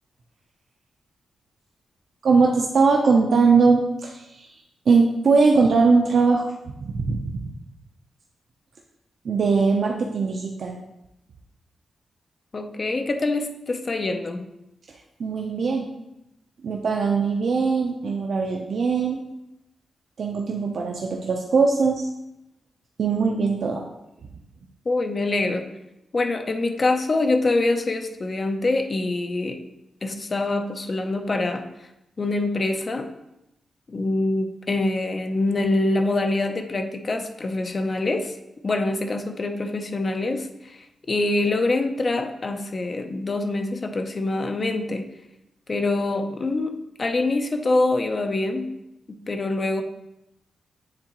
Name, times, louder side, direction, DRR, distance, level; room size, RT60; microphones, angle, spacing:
voice 1, 2.2-4.5 4.9-6.5 6.8-7.5 9.2-10.8 15.2-15.8 16.6-19.2 20.2-22.0 23.0-23.8, right 4 dB, 55° right, 0 dB, 0.6 m, -20 dB
voice 2, 12.5-14.5 24.9-25.7 26.1-29.6 30.0-31.6 32.2-33.1 33.9-38.3 38.6-45.1 45.7-46.7 47.0-48.7 49.3-49.8, left 2 dB, 35° left, 6 dB, 0.6 m, -25 dB
9.5 x 3.8 x 3.0 m, 0.89 s
wide cardioid pair, 140°, 0 cm